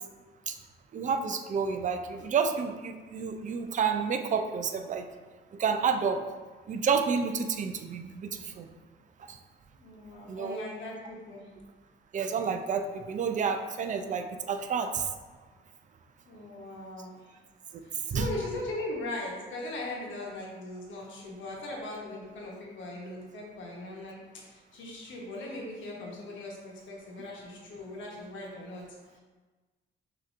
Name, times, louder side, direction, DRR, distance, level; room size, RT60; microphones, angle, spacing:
voice 1, 0.9-5.1 5.6-6.2 6.7-8.7 9.3-9.4 10.3-10.6 12.1-15.1 18.1-18.3, right 6 dB, 40° right, 6 dB, 0.4 m, -30 dB
voice 2, 9.7-11.5 16.3-17.1 17.8-28.8, left 2 dB, 75° left, -3 dB, 1.1 m, -39 dB
6.3 x 2.9 x 2.5 m, 1.3 s
cardioid pair, 90°, 20 cm